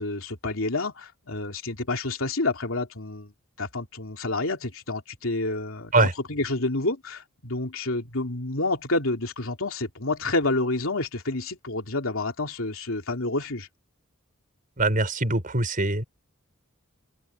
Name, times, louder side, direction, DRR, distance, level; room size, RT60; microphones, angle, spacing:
voice 1, 0.0-3.3 3.6-13.7, left 2 dB, 70° left, 3.2 m, -29 dB
voice 2, 14.8-16.0, right 2 dB, 40° right, 5.2 m, -23 dB
open air
head